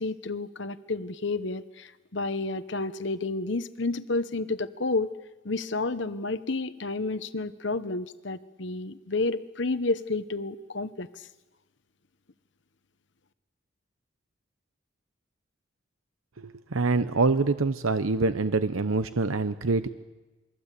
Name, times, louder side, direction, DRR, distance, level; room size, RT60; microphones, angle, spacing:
voice 1, 0.0-5.1 5.4-11.1, left 3 dB, 60° left, 12 dB, 1.0 m, -30 dB
voice 2, 16.4-19.9, right 3 dB, 85° right, 11 dB, 0.9 m, -25 dB
29.0 x 22.5 x 8.4 m, 1.2 s
head